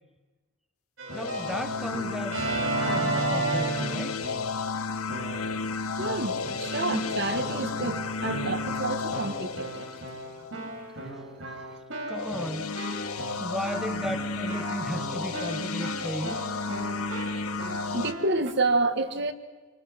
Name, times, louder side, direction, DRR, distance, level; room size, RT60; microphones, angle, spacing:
Keyboard (musical), 1.0-4.6 5.1-5.6 6.0-18.5, right 2 dB, 65° right, 5.7 m, -35 dB
sound 1, 1.1-10.6 12.1-18.1, left 4 dB, 90° left, 1.2 m, -32 dB
voice 1, 1.1-2.4 2.8-4.2 12.1-12.8 13.4-16.4 17.8-17.9, equal, ahead, 8 dB, 0.8 m, -35 dB
voice 2, 6.0-9.9 11.1-11.8 17.9-19.3, right 3 dB, 50° right, 9 dB, 1.4 m, -29 dB
26.5 x 23.5 x 6.1 m, 1.3 s
head